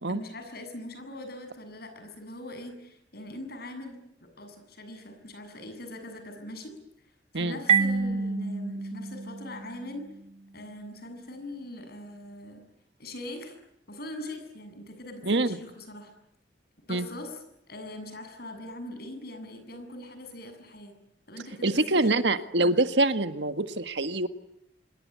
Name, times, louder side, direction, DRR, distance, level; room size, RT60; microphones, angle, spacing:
voice 1, 0.1-6.8 7.3-10.1 10.5-12.6 13.0-13.6 13.9-16.1 16.9-20.9 21.3-22.3, left 1 dB, 55° left, 7 dB, 7.5 m, -42 dB
Marimba xylophone, 7.7-10.3, right 5 dB, 35° right, 1.9 m, -28 dB
voice 2, 21.6-24.3, right 2 dB, 70° right, 10 dB, 1.7 m, -25 dB
26.5 x 22.5 x 9.6 m, 0.77 s
head